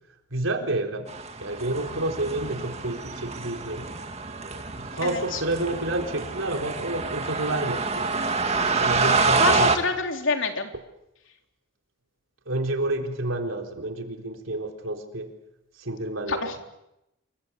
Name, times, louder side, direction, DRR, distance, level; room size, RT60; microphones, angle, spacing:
voice 1, 0.3-1.1 1.4-3.9 4.5-8.2 8.8-9.8 12.5-15.3 15.8-16.6, right 2 dB, 80° right, 3 dB, 4.0 m, -29 dB
sound 1, 1.1-9.8, right 4 dB, 30° right, 2.0 m, -27 dB
voice 2, 5.0-5.4 9.4-10.7 16.3-16.6, left 3 dB, 70° left, 4 dB, 3.4 m, -27 dB
28.0 x 23.5 x 8.2 m, 0.87 s
head